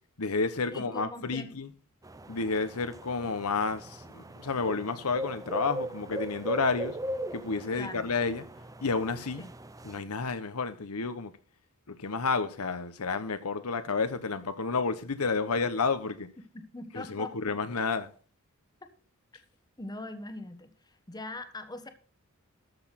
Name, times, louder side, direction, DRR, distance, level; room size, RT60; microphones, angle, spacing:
voice 1, 0.2-1.7 2.3-7.0 7.3-8.5 8.8-9.4 9.8-11.3 11.9-16.3 16.9-18.1, left 4 dB, 80° left, 1.0 m, -30 dB
voice 2, 0.7-1.5 7.7-8.1 9.4-9.5 16.5-17.6 19.8-21.9, left 2 dB, 20° left, 1.2 m, -41 dB
sound 1, 2.0-10.0, right 1 dB, 15° right, 0.6 m, -39 dB
13.5 x 6.3 x 5.8 m
head